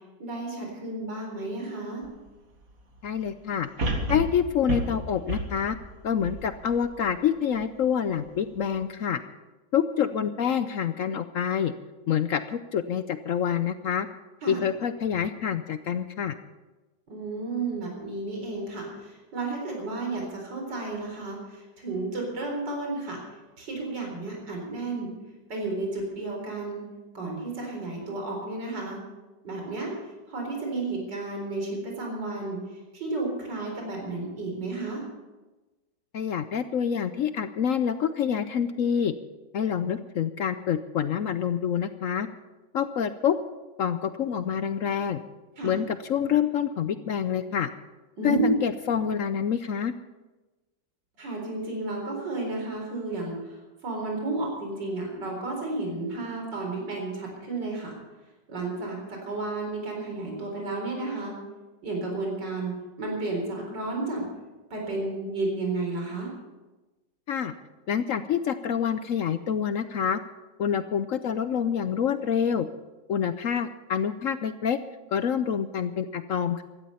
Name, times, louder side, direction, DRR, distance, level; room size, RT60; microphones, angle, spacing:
voice 1, 0.2-2.0 14.4-14.6 17.1-23.2 23.6-25.1 25.5-26.8 27.1-29.0 29.4-29.9 30.3-32.6 32.9-35.0 45.6-45.8 48.2-48.5 51.2-53.6 53.8-57.9 58.5-61.4 61.8-62.7 63.0-64.2 64.7-66.3, right 3 dB, 70° right, 0 dB, 4.7 m, -32 dB
sound 1, 2.0-2.1 3.8-7.1 7.6-7.7, right 1 dB, 50° right, 2.4 m, -31 dB
voice 2, 3.0-3.7 4.1-5.8 6.0-9.2 9.7-11.7 12.1-14.1 14.5-16.4 36.1-39.1 39.5-42.3 42.7-43.4 43.8-45.2 45.6-47.7 48.2-49.9 67.3-67.5 67.9-70.2 70.6-72.7 73.1-74.8 75.1-76.6, left 8 dB, 65° left, 11 dB, 0.8 m, -27 dB
16.0 x 13.5 x 5.6 m, 1.1 s
omnidirectional pair, 2.0 m